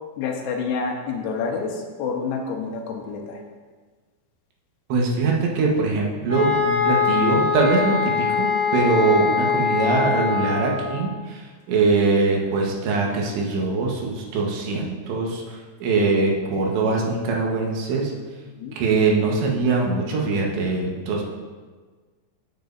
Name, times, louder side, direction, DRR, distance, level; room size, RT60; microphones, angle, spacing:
voice 1, 0.2-3.4 9.0-9.1 18.5-18.8, left 5 dB, 90° left, 2 dB, 3.2 m, -28 dB
voice 2, 4.9-18.1 18.8-21.2, right 3 dB, 90° right, -1 dB, 3.6 m, -22 dB
sound 1, 6.3-11.0, left 6 dB, 30° right, 2.4 m, -22 dB
15.5 x 7.4 x 2.7 m, 1.4 s
omnidirectional pair, 4.9 m